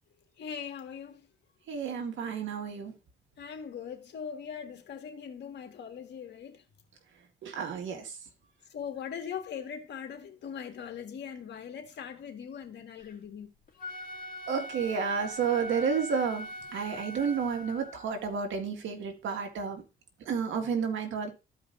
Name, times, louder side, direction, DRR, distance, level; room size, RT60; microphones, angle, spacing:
voice 1, 0.4-1.2 2.2-2.3 3.4-6.6 8.7-13.5, left 7 dB, 60° left, 1.7 m, -40 dB
voice 2, 1.7-2.9 7.4-8.1 14.5-19.8 20.3-21.3, right 6 dB, 75° right, 1.9 m, -31 dB
Wind instrument woodwind instrument, 13.7-18.1, equal, 45° left, 2.5 m, -41 dB
14.0 x 5.0 x 2.6 m
cardioid pair, 90°, 20 cm